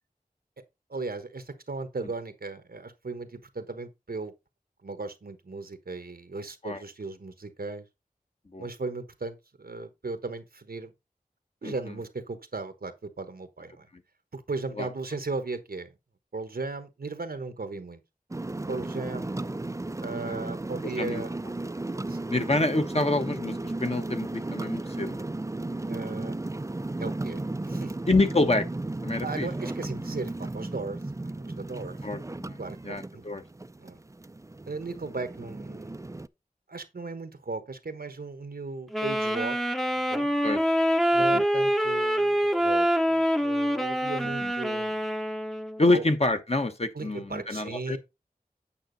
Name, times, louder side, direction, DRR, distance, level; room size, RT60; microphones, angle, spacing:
voice 1, 0.9-4.3 4.8-7.8 8.6-10.9 11.6-13.9 14.3-15.9 16.3-18.0 18.7-19.4 20.0-21.3 22.1-22.2 25.9-26.3 27.0-28.0 29.2-32.0 32.6-33.2 33.8-34.0 34.7-36.0 36.7-39.6 40.1-40.3 41.1-45.0 45.9-46.0 46.9-48.0, right 3 dB, 90° right, 1.2 m, -36 dB
voice 2, 11.6-11.9 14.8-14.9 20.2-20.4 20.8-21.2 22.3-25.2 28.1-28.7 29.0-29.5 32.0-32.6 32.8-33.4 40.4-40.6 41.3-41.4 44.4-44.5 45.8-48.0, left 2 dB, 45° left, 1.1 m, -27 dB
sound 1, 18.3-36.3, right 2 dB, 20° right, 0.4 m, -35 dB
Wind instrument woodwind instrument, 38.9-45.8, equal, ahead, 0.7 m, -25 dB
8.8 x 5.8 x 4.0 m
wide cardioid pair, 45°, 15 cm